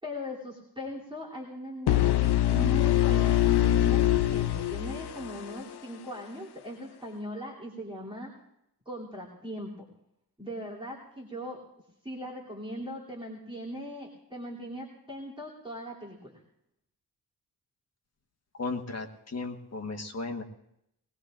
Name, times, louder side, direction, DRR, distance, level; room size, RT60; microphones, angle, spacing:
voice 1, 0.0-8.3 8.8-9.9 10.4-11.6 12.0-16.4, equal, 15° right, -5 dB, 3.1 m, -39 dB
sound 1, 1.9-5.7, left 13 dB, 90° left, 0.6 m, -24 dB
voice 2, 18.6-20.4, left 3 dB, 40° left, 3 dB, 1.5 m, -35 dB
21.0 x 20.0 x 2.6 m, 0.78 s
wide cardioid pair, 95°, 38 cm